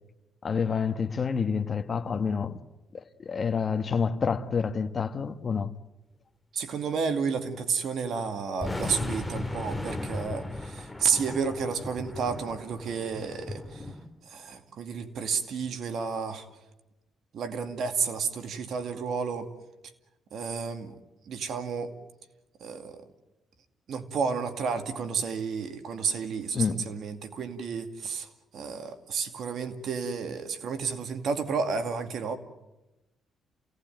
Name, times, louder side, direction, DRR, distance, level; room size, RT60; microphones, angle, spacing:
voice 1, 0.4-2.6 2.9-5.7 26.5-26.8, left 6 dB, 40° left, 1.3 m, -28 dB
voice 2, 6.5-13.9 14.2-16.5 17.3-19.5 20.3-21.0 21.3-21.9 22.6-23.0 23.9-32.4, right 5 dB, 65° right, 2.3 m, -31 dB
sound 1, 8.0-8.1 8.6-14.1, left 2 dB, 5° left, 2.2 m, -36 dB
28.5 x 18.0 x 9.2 m
cardioid pair, 90°, 0 cm